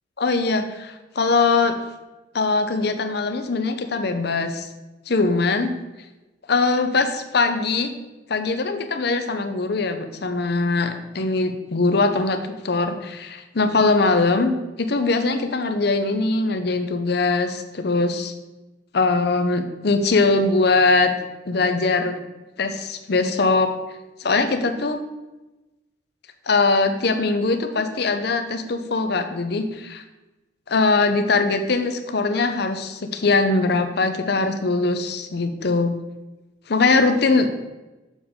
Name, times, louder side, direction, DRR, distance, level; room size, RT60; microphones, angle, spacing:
voice 1, 0.2-1.7 2.3-4.7 5.1-5.7 6.5-7.9 8.3-18.3 18.9-21.1 21.5-22.2 22.6-23.7 24.2-25.0 26.5-30.0 30.7-35.9 36.7-37.5, left 3 dB, 60° left, 8 dB, 0.7 m, -21 dB
7.2 x 6.7 x 3.6 m, 1.1 s
head